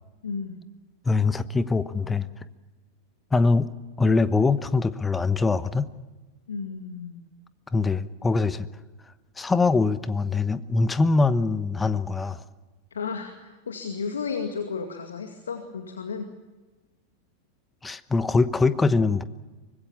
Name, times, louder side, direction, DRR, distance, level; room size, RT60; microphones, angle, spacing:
voice 1, 0.2-0.6 6.5-7.2 12.9-16.3, left 5 dB, 70° left, 6 dB, 2.2 m, -33 dB
voice 2, 1.0-2.3 3.3-3.7 4.0-5.9 7.7-8.7 9.4-12.4 17.8-19.2, left 3 dB, 10° left, 15 dB, 1.1 m, -23 dB
25.0 x 21.5 x 7.2 m, 1.2 s
figure-of-eight pair, 90°, 0 cm